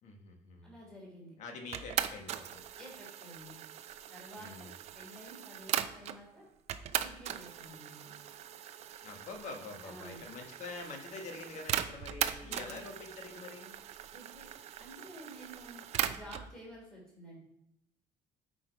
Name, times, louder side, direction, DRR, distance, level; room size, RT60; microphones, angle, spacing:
voice 1, 0.0-0.8 1.4-2.6 4.3-4.8 9.0-13.7, left 3 dB, 55° left, 4 dB, 1.3 m, -46 dB
voice 2, 0.6-1.4 2.8-3.6 4.1-6.4 7.0-8.2 9.8-10.2 12.4-12.9 14.1-14.5 14.8-17.4, equal, 5° left, -4 dB, 3.1 m, -51 dB
sound 1, 1.7-6.2 6.7-16.5, right 10 dB, 45° right, 0.5 m, -39 dB
8.2 x 5.0 x 4.5 m, 0.78 s
cardioid pair, 175°, 15 cm